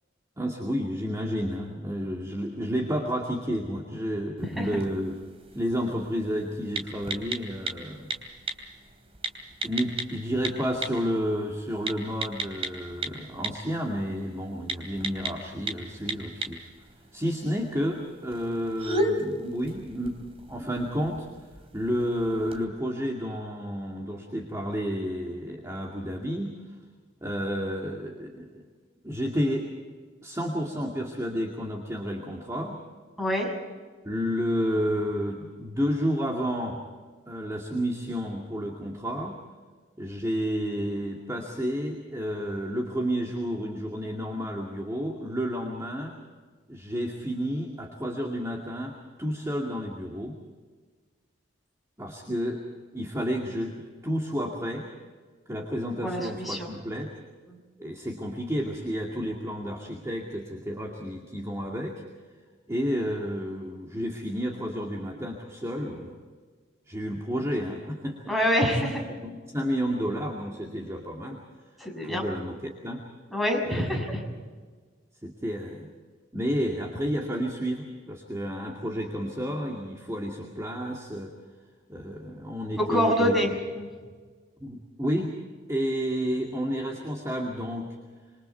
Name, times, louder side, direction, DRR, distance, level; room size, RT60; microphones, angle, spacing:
voice 1, 0.4-5.1 5.5-8.1 9.6-16.6 17.1-20.2 20.5-21.3 21.7-26.6 27.2-28.6 29.0-29.7 30.2-32.8 34.0-36.8 37.3-39.4 40.0-46.1 46.7-48.9 49.2-50.4 52.0-52.6 52.9-54.9 55.5-57.1 57.8-62.0 62.7-66.2 66.9-68.3 68.8-68.9 69.2-71.4 72.0-73.0 73.6-73.9 74.3-74.4 75.2-75.9 76.3-81.3 81.9-83.6 84.6-85.3 85.7-88.0, equal, 15° right, 0 dB, 2.4 m, -31 dB
sound 1, 4.4-22.6, right 1 dB, 35° right, 3.0 m, -37 dB
voice 2, 33.2-33.5 56.0-56.7 57.5-57.6 68.3-69.0 71.8-72.2 73.3-74.2 82.8-83.5 83.8-83.9, equal, ahead, 0 dB, 6.6 m, -26 dB
27.0 x 24.0 x 4.5 m, 1.5 s
head